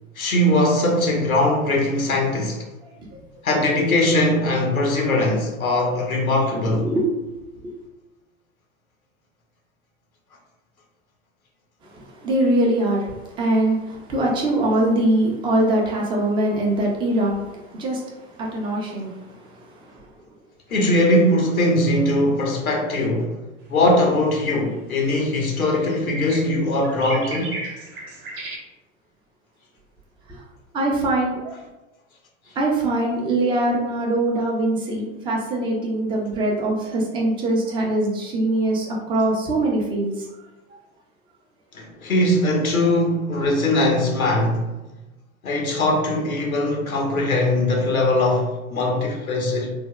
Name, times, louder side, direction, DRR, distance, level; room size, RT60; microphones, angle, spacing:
voice 1, 0.2-2.7 3.4-6.9 20.7-23.3 23.7-27.6 41.7-44.7 45.4-49.7, left 1 dB, 90° left, 1 dB, 0.7 m, -20 dB
voice 2, 6.7-7.3 7.6-7.7 11.8-20.0 30.3-30.4 30.7-31.5 32.6-40.3, right 1 dB, 15° right, -2 dB, 0.4 m, -23 dB
sound 1, 24.7-28.6, right 1 dB, 45° right, 0.8 m, -35 dB
3.3 x 2.1 x 2.2 m, 1.1 s
figure-of-eight pair, 90°, 41 cm